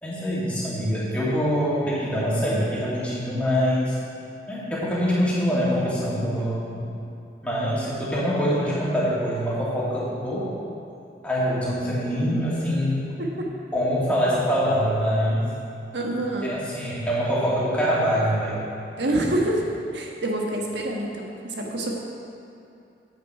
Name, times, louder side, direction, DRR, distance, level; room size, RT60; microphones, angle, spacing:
voice 1, 0.0-4.0 4.5-6.8 7.4-10.5 11.2-13.1 13.7-15.5 16.4-18.6, equal, 10° left, -9 dB, 2.3 m, -24 dB
voice 2, 15.9-16.5 19.0-19.6 19.9-22.0, right 1 dB, 85° right, -1 dB, 1.4 m, -27 dB
9.1 x 8.4 x 4.9 m, 2.7 s
head